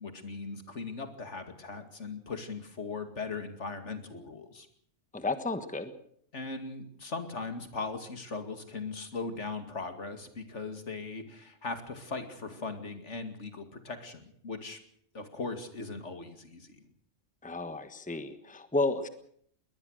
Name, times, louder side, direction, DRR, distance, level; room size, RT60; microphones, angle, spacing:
voice 1, 0.0-4.7 6.3-14.8 15.1-16.8, left 4 dB, 65° left, 8 dB, 2.6 m, -39 dB
voice 2, 5.1-5.9 17.4-19.1, left 2 dB, 5° left, 10 dB, 1.3 m, -32 dB
21.5 x 19.5 x 6.5 m, 0.65 s
omnidirectional pair, 1.3 m